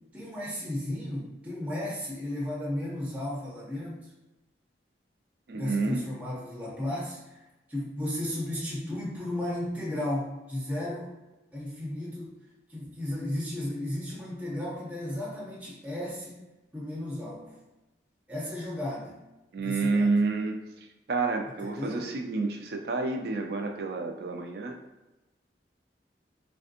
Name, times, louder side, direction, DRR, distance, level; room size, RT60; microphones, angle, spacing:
voice 1, 0.1-4.1 5.5-7.4 7.7-11.1 11.5-12.3 12.7-16.4 16.7-17.6 18.3-19.2 19.6-20.1 21.6-22.0, left 1 dB, 10° right, -6 dB, 0.6 m, -34 dB
voice 2, 5.5-6.0 19.5-20.6 21.1-24.8, right 3 dB, 60° right, 3 dB, 0.4 m, -29 dB
3.4 x 2.6 x 2.5 m, 1.0 s
head